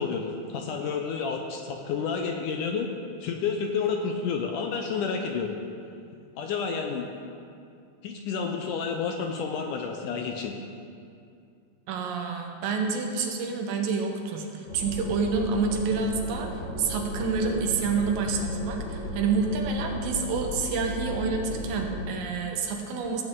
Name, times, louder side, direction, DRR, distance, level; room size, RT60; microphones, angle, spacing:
voice 1, 0.0-2.9 3.2-5.6 6.4-7.1 8.0-10.5, left 5 dB, 75° left, 3 dB, 2.0 m, -30 dB
voice 2, 11.9-23.2, right 4 dB, 75° right, 3 dB, 2.6 m, -28 dB
sound 1, 14.7-22.0, left 1 dB, 55° left, 3.0 m, -35 dB
15.0 x 8.5 x 3.7 m, 2.4 s
omnidirectional pair, 4.1 m